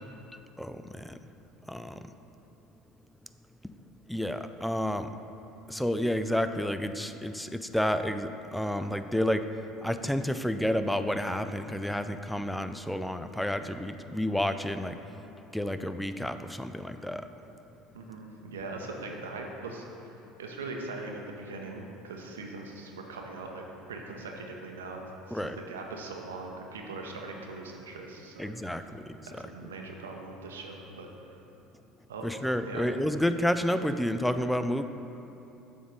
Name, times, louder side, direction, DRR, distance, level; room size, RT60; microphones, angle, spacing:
voice 1, 0.6-1.2 1.7-1.9 4.1-5.1 5.7-9.5 9.8-15.0 15.5-17.3 25.3-25.6 28.4-29.0 32.2-34.8, equal, 5° left, 10 dB, 0.4 m, -30 dB
voice 2, 17.9-20.1 20.4-23.6 23.9-25.0 25.3-28.5 28.8-29.0 29.3-31.3 32.1-32.2 32.6-32.9, right 3 dB, 85° right, 1 dB, 0.7 m, -41 dB
7.0 x 3.7 x 6.2 m, 2.9 s
hypercardioid pair, 75°, 0 cm